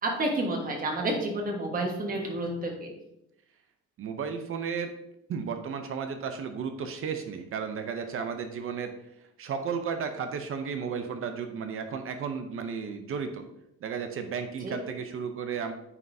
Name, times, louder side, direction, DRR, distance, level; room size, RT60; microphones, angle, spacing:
voice 1, 0.0-2.9 14.6-14.8, right 1 dB, 30° right, 1 dB, 1.4 m, -30 dB
voice 2, 4.0-4.9 5.3-8.9 9.4-13.4 13.8-15.7, right 6 dB, 45° right, 7 dB, 0.6 m, -33 dB
9.5 x 5.4 x 2.7 m, 0.84 s
cardioid pair, 165°, 30 cm